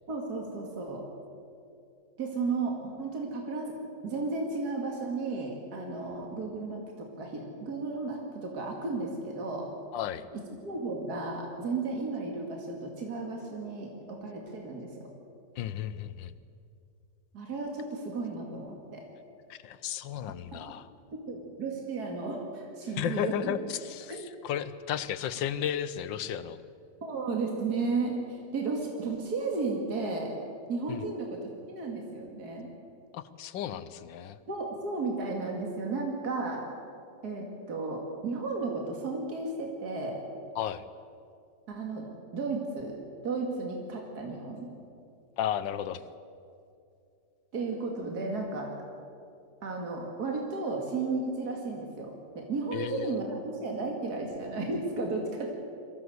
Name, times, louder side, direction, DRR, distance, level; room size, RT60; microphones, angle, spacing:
voice 1, 0.1-1.0 2.2-3.7 4.0-9.7 10.6-15.1 17.3-19.1 20.5-20.6 21.1-23.5 24.1-24.2 27.0-30.3 30.7-32.7 34.5-36.7 37.2-40.2 41.7-42.1 42.3-43.0 43.2-44.7 47.5-48.7 49.6-55.5, right 3 dB, 55° right, 1 dB, 2.8 m, -34 dB
voice 2, 9.9-10.3 15.6-16.3 19.5-20.9 23.0-26.6 30.9-31.0 33.1-34.4 40.5-40.8 45.4-46.0 52.7-53.2, left 10 dB, 90° left, 14 dB, 1.5 m, -34 dB
22.5 x 16.0 x 7.9 m, 2.5 s
omnidirectional pair, 2.0 m